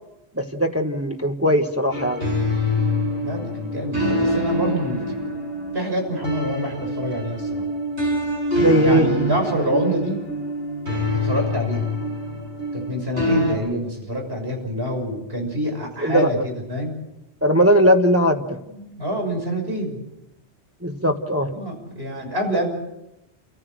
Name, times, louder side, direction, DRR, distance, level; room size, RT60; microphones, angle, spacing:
voice 1, 0.4-2.2 8.6-9.1 16.0-16.3 17.4-18.6 20.8-21.5, equal, 15° right, 4 dB, 1.4 m, -19 dB
sound 1, 1.9-13.6, equal, 90° right, 7.6 m, -25 dB
voice 2, 3.2-5.2 5.7-7.6 8.8-10.2 11.1-11.8 12.7-17.0 18.6-20.0 21.5-22.7, equal, 65° right, 2 dB, 6.8 m, -26 dB
30.0 x 14.5 x 7.6 m, 0.91 s
omnidirectional pair, 1.1 m